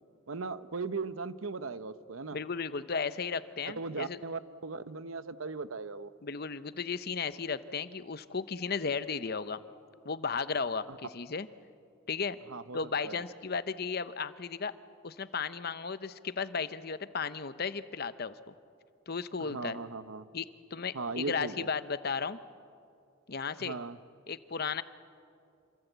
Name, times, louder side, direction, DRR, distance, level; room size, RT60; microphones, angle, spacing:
voice 1, 0.3-2.4 3.6-6.1 10.9-11.0 12.5-12.8 13.0-13.2 19.4-20.3 20.9-21.7 23.6-24.0, right 4 dB, 85° right, 13 dB, 0.9 m, -38 dB
voice 2, 2.3-4.2 6.2-9.6 10.0-11.5 12.1-12.4 12.7-14.7 15.0-18.5 19.1-19.8 20.3-20.5 20.7-22.4 23.3-23.8 24.3-24.8, left 5 dB, 50° left, 13 dB, 0.8 m, -35 dB
27.5 x 25.5 x 8.1 m, 2.4 s
head